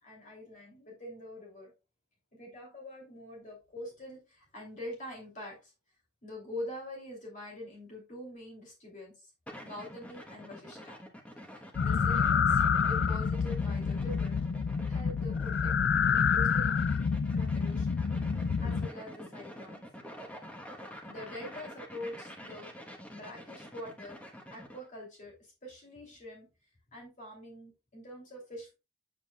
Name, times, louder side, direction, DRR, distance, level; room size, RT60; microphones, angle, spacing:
voice 1, 0.0-1.7 2.3-5.7 6.2-9.3 9.6-11.0 11.5-14.4 14.9-15.8 16.1-16.9 17.3-18.0 18.6-19.8 21.0-22.7 23.1-24.2 24.5-26.5 26.9-28.7, left 1 dB, 45° left, -2 dB, 2.9 m, -45 dB
sound 1, 9.5-24.9, equal, 10° left, 1.1 m, -48 dB
sound 2, 11.7-18.9, left 6 dB, 85° left, 0.4 m, -28 dB
8.2 x 7.2 x 2.3 m, 0.27 s
head